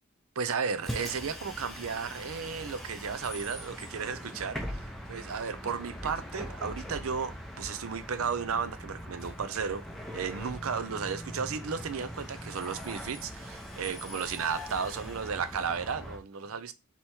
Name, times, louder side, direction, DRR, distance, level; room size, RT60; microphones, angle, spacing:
voice 1, 0.4-9.9 10.1-16.7, right 6 dB, 75° right, 0.5 m, -34 dB
Bus, 0.8-16.2, equal, ahead, 0.7 m, -41 dB
3.5 x 3.0 x 4.3 m
head